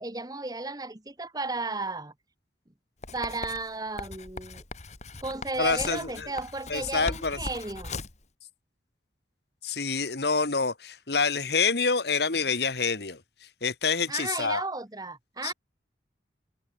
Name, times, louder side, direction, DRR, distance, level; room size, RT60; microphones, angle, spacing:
voice 1, 0.0-2.1 3.1-4.6 5.2-7.9 14.1-15.5, right 3 dB, 20° right, 1.3 m, -34 dB
Writing, 3.0-8.2, left 3 dB, 40° left, 2.4 m, -39 dB
voice 2, 5.6-6.3 6.7-7.4 9.6-13.2 13.6-14.6 15.4-15.5, left 4 dB, 65° left, 1.8 m, -27 dB
head